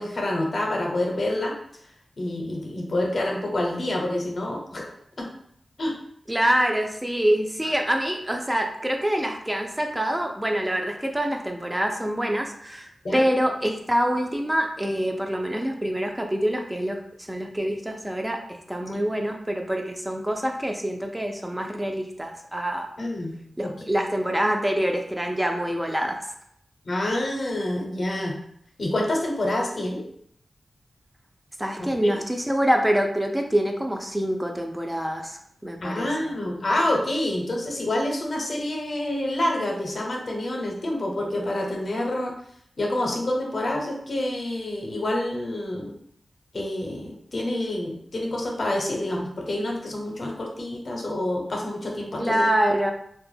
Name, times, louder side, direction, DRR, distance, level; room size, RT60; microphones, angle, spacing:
voice 1, 0.0-1.6 2.2-5.3 5.8-5.9 13.0-13.2 23.0-23.7 26.9-28.4 28.8-30.0 31.8-32.2 35.8-42.3 42.8-45.9 46.5-52.4, left 1 dB, 60° left, 0 dB, 0.6 m, -27 dB
voice 2, 6.3-17.0 17.3-22.9 23.6-26.2 31.6-36.1 52.2-52.9, equal, 15° right, 3 dB, 0.3 m, -25 dB
2.1 x 2.0 x 3.2 m, 0.70 s
wide cardioid pair, 65°, 0 cm